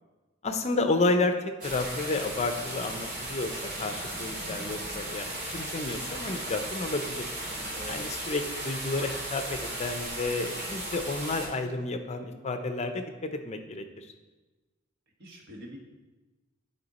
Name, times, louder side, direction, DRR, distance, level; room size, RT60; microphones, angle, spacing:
voice 1, 0.4-1.3 1.6-7.3 7.9-14.1, left 2 dB, 35° left, 7 dB, 0.5 m, -31 dB
sound 1, 1.6-11.5, right 1 dB, 40° right, 2.6 m, -36 dB
voice 2, 7.7-8.1 15.2-15.8, equal, 60° right, 0 dB, 1.4 m, -43 dB
10.5 x 4.4 x 4.1 m, 1.2 s
head